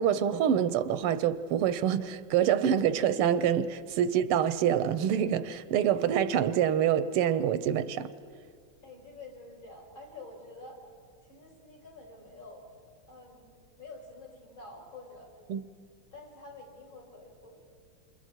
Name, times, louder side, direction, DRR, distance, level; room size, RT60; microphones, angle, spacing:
voice 1, 0.0-8.1 15.5-15.6, right 9 dB, 85° right, 1.7 m, -26 dB
voice 2, 8.8-10.9 11.3-12.6 13.1-15.3 16.1-17.6, left 2 dB, 65° left, 5.5 m, -48 dB
28.0 x 27.5 x 4.6 m
omnidirectional pair, 2.4 m